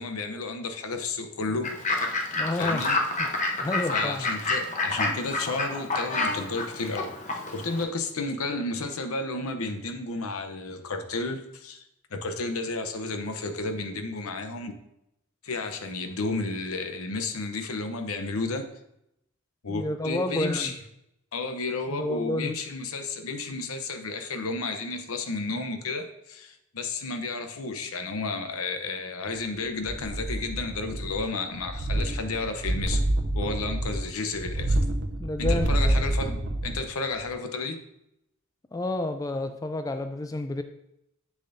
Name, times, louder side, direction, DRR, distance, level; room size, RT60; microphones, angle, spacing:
voice 1, 0.0-1.7 2.6-3.0 3.9-11.8 12.1-14.7 15.4-18.7 19.6-20.8 21.3-33.0 33.3-34.8 35.4-37.8, left 3 dB, 85° left, 7 dB, 0.8 m, -32 dB
Fowl / Bird, 1.6-7.8, left 2 dB, 35° left, 0.9 m, -29 dB
voice 2, 2.4-2.8 3.6-4.3 19.7-20.7 21.9-22.5 35.2-36.0 38.7-40.6, left 2 dB, 15° left, 8 dB, 0.3 m, -30 dB
sound 1, 29.8-31.3 31.6-36.9 37.2-37.3, right 1 dB, 60° right, 0.7 m, -27 dB
7.3 x 6.9 x 2.6 m, 0.81 s
head